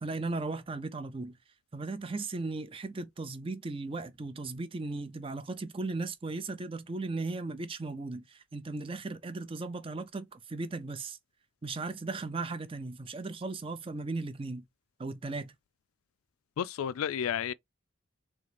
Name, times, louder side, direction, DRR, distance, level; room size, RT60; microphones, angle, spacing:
voice 1, 0.0-1.4 1.7-11.2 11.6-14.6 15.0-15.5, right 3 dB, 25° right, 0.5 m, -37 dB
voice 2, 16.6-17.5, left 8 dB, 85° left, 0.3 m, -31 dB
3.8 x 3.2 x 3.3 m
head